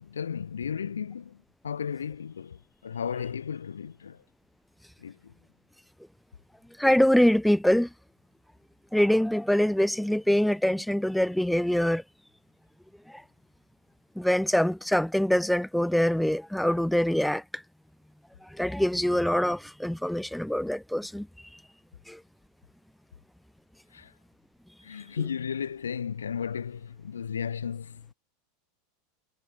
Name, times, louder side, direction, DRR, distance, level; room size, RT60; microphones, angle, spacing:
voice 1, 0.0-1.4 1.6-4.2 5.0-5.3 23.9-24.1 24.8-28.1, left 7 dB, 90° left, 2.3 m, -34 dB
voice 2, 6.8-7.9 8.9-12.0 13.1-13.2 14.2-17.6 18.5-21.3 22.1-22.2, equal, ahead, 1.0 m, -24 dB
hypercardioid pair, 95°, 0 cm